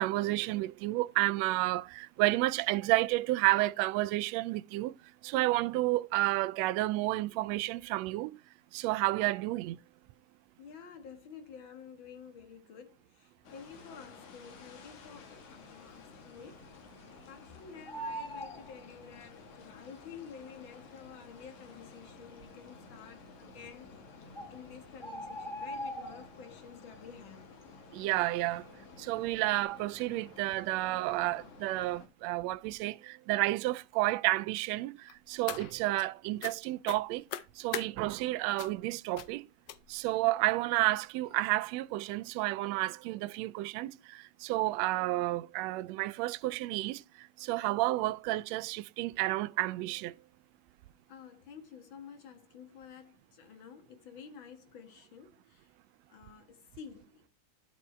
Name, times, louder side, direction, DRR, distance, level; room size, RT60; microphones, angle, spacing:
voice 1, 0.0-4.9 5.2-8.4 8.7-9.8 27.9-28.7 29.0-37.2 37.5-39.5 39.9-50.1, right 18 dB, 90° right, 1.5 m, -31 dB
voice 2, 10.6-23.9 24.5-27.5 51.1-55.7 56.1-57.3, left 7 dB, 45° left, 1.9 m, -51 dB
sound 1, 13.4-32.1, left 4 dB, 70° left, 3.3 m, -53 dB
Bird, 15.1-15.5 15.9-16.0 16.2-17.4 17.7-19.5 20.4-20.5 21.1-21.2 21.4-21.5 22.1-22.6 23.6-23.7 24.0-24.1 24.3-26.6 27.0-27.3 27.6-29.0 29.3-29.6, equal, 10° left, 1.6 m, -42 dB
sound 2, 35.1-36.1 36.4-36.6 36.8-37.9 38.6-38.8 39.1-39.3 39.7-40.1 40.8-40.9 41.3-41.4 41.7-41.8, left 12 dB, 90° left, 1.3 m, -41 dB
11.0 x 4.4 x 4.3 m
omnidirectional pair, 3.6 m